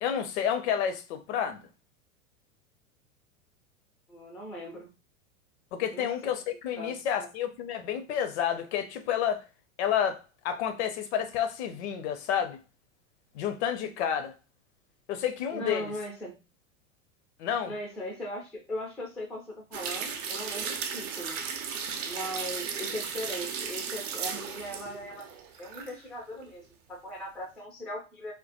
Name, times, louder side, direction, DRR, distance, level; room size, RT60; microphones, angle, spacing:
voice 1, 0.0-1.6 5.7-9.4 9.8-12.6 13.3-14.3 15.1-15.9 17.4-17.7, left 9 dB, 60° left, 0.6 m, -30 dB
voice 2, 4.1-4.9 5.9-6.1 6.8-7.3 15.5-16.4 17.6-21.4 22.0-25.3 25.6-26.6 26.9-28.3, left 1 dB, ahead, 0.3 m, -39 dB
sound 1, 19.7-26.0 26.3-26.4, right 6 dB, 70° right, 0.6 m, -35 dB
2.2 x 2.2 x 2.6 m
hypercardioid pair, 100°, 39 cm